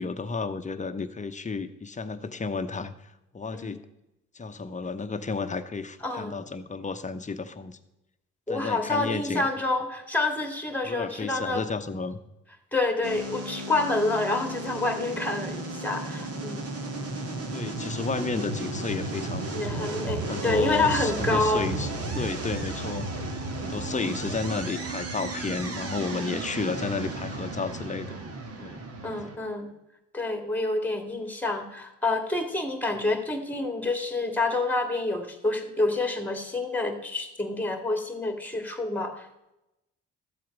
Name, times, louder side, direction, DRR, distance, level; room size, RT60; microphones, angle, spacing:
voice 1, 0.0-2.9 3.3-3.8 4.3-7.8 8.5-9.5 10.8-12.2 17.5-19.9 20.3-23.1 23.6-28.2 28.6-28.8, left 4 dB, 25° left, 9 dB, 0.9 m, -32 dB
voice 2, 6.0-6.3 8.5-11.6 12.7-16.7 19.5-21.7 24.0-24.2 29.0-29.7 30.1-39.3, left 2 dB, 5° left, 5 dB, 2.0 m, -28 dB
sound 1, 13.0-29.4, right 2 dB, 50° right, 1.7 m, -34 dB
13.5 x 7.6 x 5.3 m, 0.92 s
cardioid pair, 90°, 30 cm